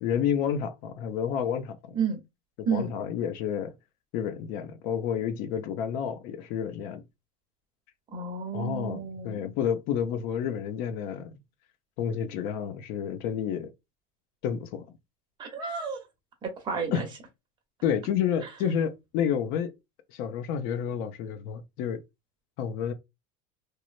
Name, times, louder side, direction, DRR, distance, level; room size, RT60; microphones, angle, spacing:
voice 1, 0.0-1.9 2.7-3.7 4.1-7.0 8.5-11.3 12.0-13.7 14.4-14.8 16.9-17.0 17.8-19.7 20.1-22.0 22.6-22.9, left 8 dB, 60° left, 0.5 m, -30 dB
voice 2, 8.1-9.5 15.4-16.0 16.4-17.1, right 6 dB, 30° right, 0.9 m, -31 dB
3.0 x 2.0 x 2.5 m
cardioid pair, 150°, 16 cm